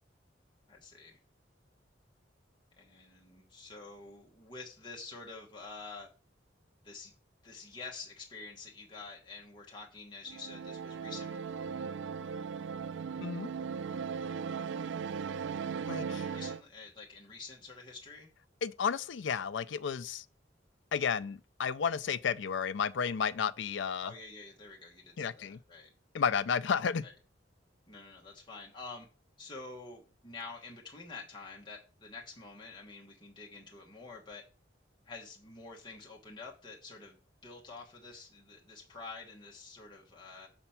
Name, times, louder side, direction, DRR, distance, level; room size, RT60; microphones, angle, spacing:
voice 1, 0.7-1.2 2.8-6.1 6.8-7.1 7.4-11.4 16.3-18.3 24.0-25.9 27.0-27.1 27.9-29.1 29.4-34.4 35.1-40.5, left 3 dB, 25° left, 1.1 m, -48 dB
sound 1, 10.3-16.6, right 6 dB, 75° right, 0.3 m, -38 dB
voice 2, 15.9-16.3 18.6-20.2 20.9-24.1 25.2-25.6 26.1-27.1, left 6 dB, 75° left, 0.4 m, -32 dB
7.0 x 4.3 x 5.7 m
head